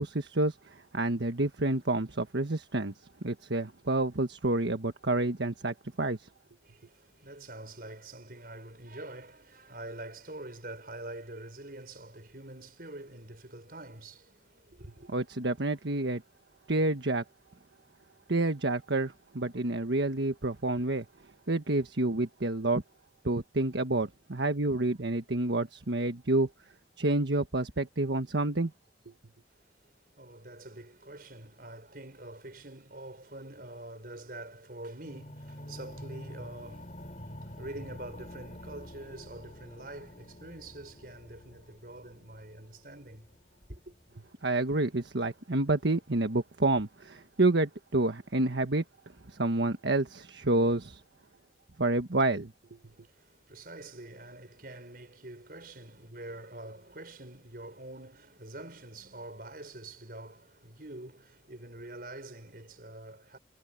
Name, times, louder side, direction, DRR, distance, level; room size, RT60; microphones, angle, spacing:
voice 1, 0.0-2.9 3.2-6.3 15.1-16.2 16.7-17.2 18.3-21.1 21.5-22.8 23.2-26.5 27.0-28.7 44.4-48.8 49.3-51.0 51.8-52.5, right 2 dB, 85° right, 1.4 m, -29 dB
voice 2, 6.6-15.1 29.5-43.3 43.7-43.9 52.8-63.4, right 1 dB, 55° right, 5.8 m, -46 dB
sound 1, 35.0-45.0, equal, 40° left, 4.8 m, -47 dB
head